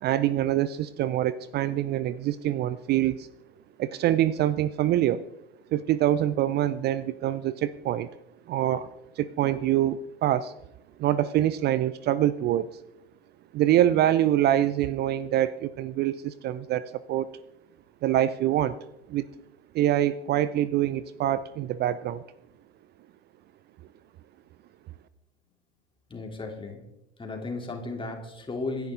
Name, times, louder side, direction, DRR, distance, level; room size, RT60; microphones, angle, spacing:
voice 1, 0.0-3.3 3.8-5.3 5.7-8.1 8.5-8.9 9.2-10.5 11.0-12.7 13.5-17.3 18.0-18.8 19.1-19.3 19.7-22.2, right 12 dB, 30° right, 17 dB, 0.6 m, -25 dB
voice 2, 26.1-26.8 27.2-28.9, left 3 dB, 15° left, 2 dB, 3.5 m, -35 dB
26.0 x 10.5 x 3.9 m, 0.89 s
figure-of-eight pair, 85°, 34 cm